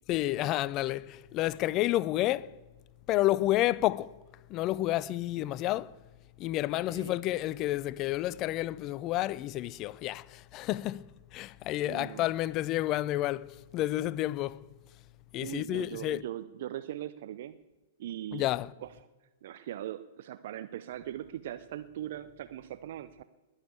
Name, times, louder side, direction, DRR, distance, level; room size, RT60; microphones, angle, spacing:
voice 1, 0.1-2.5 3.1-4.1 4.5-5.9 6.4-14.6 15.3-16.2 18.3-18.7, left 15 dB, 35° left, 0.5 m, -30 dB
voice 2, 6.9-7.2 11.8-12.3 15.4-17.6 18.0-18.5 18.8-18.9 19.4-23.2, right 12 dB, 55° right, 0.6 m, -40 dB
20.5 x 7.3 x 8.4 m
figure-of-eight pair, 105°, 0 cm